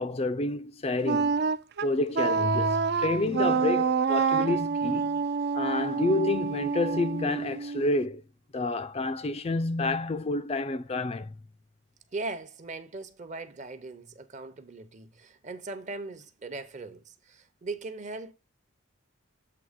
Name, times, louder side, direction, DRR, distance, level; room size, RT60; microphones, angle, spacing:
voice 1, 0.0-1.3 1.8-5.2 5.5-8.2 8.5-11.3, left 2 dB, 30° left, 0.4 m, -29 dB
Wind instrument woodwind instrument, 1.0-8.0, right 5 dB, 50° right, 0.4 m, -27 dB
voice 2, 12.1-18.3, right 3 dB, 35° right, 0.8 m, -39 dB
7.8 x 3.4 x 5.1 m
head